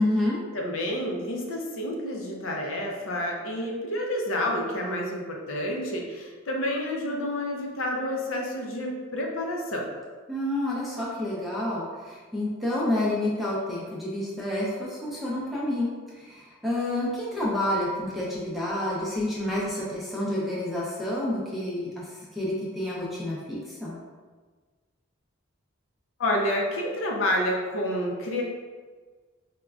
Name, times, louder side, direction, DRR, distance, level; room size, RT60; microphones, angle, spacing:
voice 1, 0.0-0.4 10.3-24.0, left 1 dB, ahead, -7 dB, 0.5 m, -29 dB
voice 2, 0.5-9.9 26.2-28.4, left 1 dB, 70° left, -1 dB, 0.6 m, -29 dB
5.0 x 2.2 x 2.3 m, 1.4 s
head